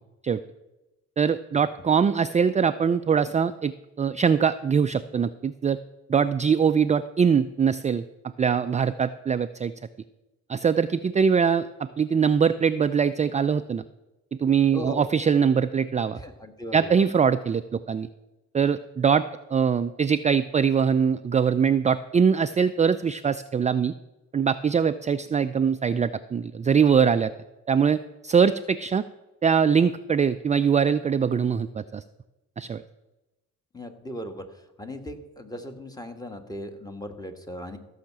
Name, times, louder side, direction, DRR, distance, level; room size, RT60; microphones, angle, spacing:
voice 1, 1.2-5.8 6.1-8.0 8.4-9.7 10.5-13.8 14.4-16.2 16.7-18.1 18.5-19.2 19.5-23.9 24.3-27.3 27.7-29.0 29.4-32.0 32.6-32.8, right 6 dB, 25° right, 10 dB, 0.4 m, -22 dB
voice 2, 14.7-15.1 16.1-16.9 33.7-34.4 34.8-37.8, equal, 10° left, 6 dB, 1.6 m, -37 dB
14.5 x 5.8 x 7.5 m, 1.0 s
cardioid pair, 90°, 30 cm